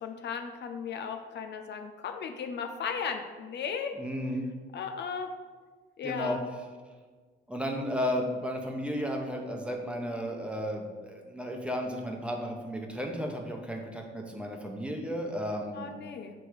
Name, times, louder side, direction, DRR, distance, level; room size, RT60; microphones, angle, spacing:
voice 1, 0.0-4.0 4.7-5.3 6.0-6.4 15.7-16.3, left 6 dB, 60° left, 6 dB, 0.6 m, -36 dB
voice 2, 4.0-4.4 6.0-6.4 7.5-15.9, equal, 5° right, 1 dB, 1.0 m, -33 dB
6.7 x 3.5 x 4.7 m, 1.4 s
cardioid pair, 90°, 20 cm